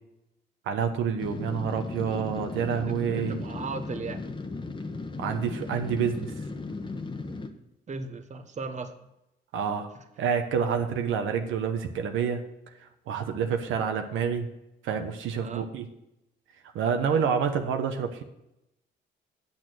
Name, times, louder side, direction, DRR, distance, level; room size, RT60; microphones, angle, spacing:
voice 1, 0.7-3.4 5.2-6.3 9.5-9.9 10.2-12.4 13.1-14.5 14.8-15.9 16.7-18.2, right 7 dB, 80° right, 5 dB, 1.0 m, -28 dB
sound 1, 1.2-7.5, left 3 dB, 25° left, 1.1 m, -36 dB
voice 2, 2.8-4.2 7.9-8.9 9.9-10.0 15.4-15.7 17.1-17.3, right 4 dB, 35° right, 7 dB, 1.0 m, -37 dB
8.7 x 6.5 x 6.3 m, 0.88 s
cardioid pair, 90°, 20 cm